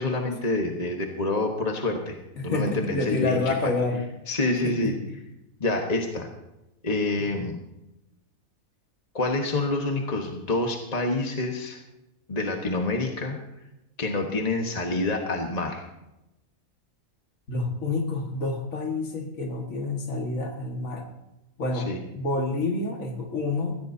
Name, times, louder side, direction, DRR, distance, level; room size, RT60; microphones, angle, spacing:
voice 1, 0.0-2.2 2.4-3.7 4.3-5.0 5.6-6.3 6.8-7.6 9.1-11.8 12.3-13.4 14.0-15.8 21.7-22.0, left 2 dB, 30° left, 2 dB, 1.3 m, -27 dB
voice 2, 2.4-4.1 4.6-5.0 17.5-21.1 21.6-23.8, left 3 dB, 70° left, 2 dB, 2.2 m, -28 dB
21.0 x 15.5 x 2.8 m, 0.92 s
omnidirectional pair, 1.5 m